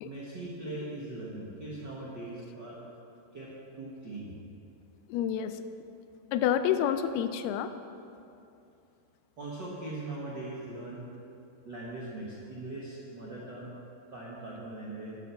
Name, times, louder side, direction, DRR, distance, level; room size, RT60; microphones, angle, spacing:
voice 1, 0.0-2.8 3.3-3.5 3.8-4.3 9.4-11.0 11.6-13.7 14.1-15.2, right 2 dB, 65° right, -5 dB, 1.1 m, -40 dB
voice 2, 5.1-5.6 6.3-7.8, left 9 dB, 90° left, 10 dB, 2.6 m, -28 dB
11.0 x 9.1 x 7.0 m, 2.6 s
omnidirectional pair, 4.4 m